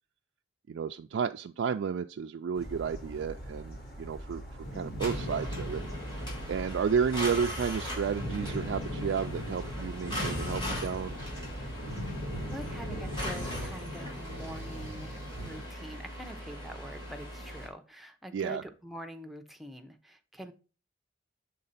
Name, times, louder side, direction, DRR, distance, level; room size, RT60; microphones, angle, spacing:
voice 1, 0.7-4.4 4.7-5.8 6.5-11.3 18.3-18.6, right 6 dB, 75° right, 5 dB, 0.3 m, -32 dB
sound 1, 2.5-13.7, right 1 dB, 55° left, 2.2 m, -44 dB
sound 2, 4.6-15.6, equal, 80° left, 2.9 m, -40 dB
sound 3, 5.0-17.7, equal, 25° left, 2.8 m, -39 dB
voice 2, 12.5-20.5, equal, ahead, 5 dB, 0.7 m, -45 dB
6.6 x 3.7 x 4.1 m, 0.34 s
head